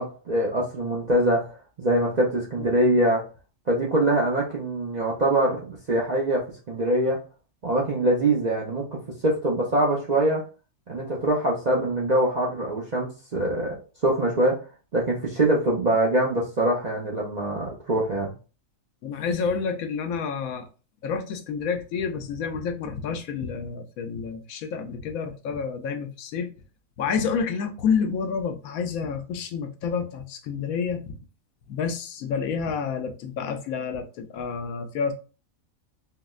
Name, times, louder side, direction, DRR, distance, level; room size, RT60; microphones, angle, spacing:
voice 1, 0.0-1.5 1.8-3.3 3.7-7.2 7.6-8.9 9.2-10.4 10.9-13.8 14.0-14.6 14.9-18.3, right 1 dB, 50° right, -4 dB, 0.5 m, -23 dB
voice 2, 2.6-3.0 19.0-20.7 21.0-26.5 27.0-31.2 31.7-35.1, left 6 dB, 80° left, 6 dB, 1.0 m, -29 dB
4.0 x 2.0 x 2.3 m, 0.34 s
omnidirectional pair, 1.5 m